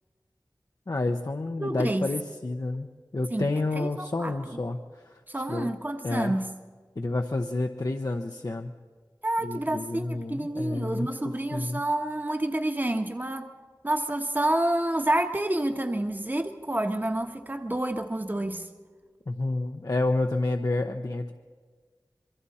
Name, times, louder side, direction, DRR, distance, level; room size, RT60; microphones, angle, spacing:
voice 1, 0.9-2.9 3.1-5.7 6.0-6.3 7.0-8.7 9.4-11.1 11.5-11.8 19.3-21.3, left 2 dB, 55° left, 3 dB, 0.9 m, -29 dB
voice 2, 1.6-2.1 3.3-3.5 3.7-4.6 5.3-6.5 9.2-13.5 13.8-18.7, right 1 dB, 25° right, 5 dB, 1.2 m, -29 dB
27.0 x 23.0 x 4.3 m, 1.5 s
wide cardioid pair, 55°, 7 cm